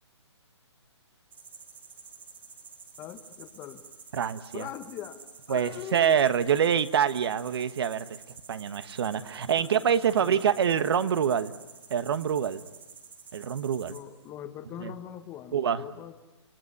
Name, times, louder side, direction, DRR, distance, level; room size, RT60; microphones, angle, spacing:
sound 1, 1.3-14.3, right 5 dB, 10° right, 1.4 m, -50 dB
voice 1, 3.0-3.8 4.5-5.2 5.5-6.2 9.5-10.6 13.9-16.1, left 11 dB, 15° left, 9 dB, 1.3 m, -42 dB
voice 2, 4.1-4.7 5.5-8.0 8.5-11.5 11.9-12.6 13.3-14.0 14.8-14.9 15.5-15.8, right 8 dB, 55° right, 12 dB, 1.4 m, -25 dB
29.5 x 19.0 x 9.8 m, 1.1 s
hypercardioid pair, 155°, 15 cm